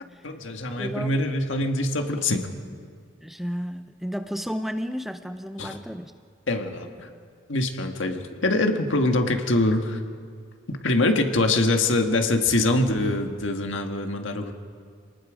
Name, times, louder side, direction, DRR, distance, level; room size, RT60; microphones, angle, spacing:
voice 1, 0.2-2.4 5.6-5.8 6.5-7.1 7.5-10.0 10.7-14.5, left 2 dB, 85° left, 5 dB, 1.7 m, -24 dB
voice 2, 0.8-1.2 3.2-6.1, equal, ahead, 8 dB, 0.6 m, -32 dB
27.5 x 19.0 x 5.1 m, 2.1 s
head